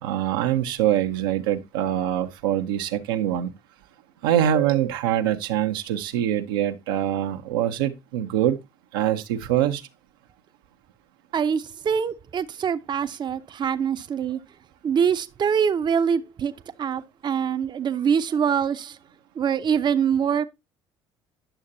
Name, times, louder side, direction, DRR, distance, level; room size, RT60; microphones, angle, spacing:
voice 1, 0.0-3.5 4.2-8.6 8.9-9.8, right 11 dB, 90° right, 0.8 m, -24 dB
voice 2, 11.3-14.4 14.8-16.5 16.8-19.0 19.4-20.4, right 7 dB, 40° right, 0.7 m, -24 dB
10.0 x 6.5 x 2.6 m
hypercardioid pair, 65°, 11 cm